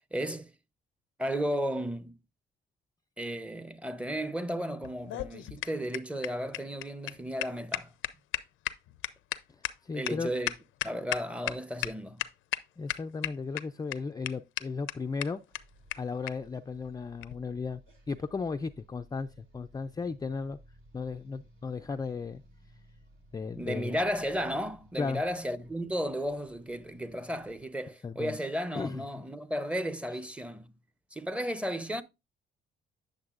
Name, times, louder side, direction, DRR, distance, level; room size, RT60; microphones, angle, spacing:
voice 1, 0.1-0.5 1.2-2.2 3.2-7.9 9.9-10.5 10.8-12.2 23.6-30.7 31.1-32.0, equal, 5° right, 0.7 m, -34 dB
sound 1, 4.8-11.5 11.8-11.9 12.2-12.6 12.9-13.6 13.9-14.0 14.3-14.4 14.6-14.7 14.9-15.0 15.2-15.3 15.5-15.6 15.9-16.0 16.3-16.4 17.2-17.4, left 14 dB, 90° left, 0.6 m, -33 dB
voice 2, 9.8-10.3 12.8-15.4 16.0-17.8 18.1-20.6 20.9-22.4 23.3-24.0 25.0-25.2 28.0-28.4 28.8-29.2, left 4 dB, 20° left, 0.4 m, -35 dB
sound 2, 15.5-27.7, equal, 85° right, 2.7 m, -58 dB
9.4 x 6.6 x 2.5 m
cardioid pair, 90°, 20 cm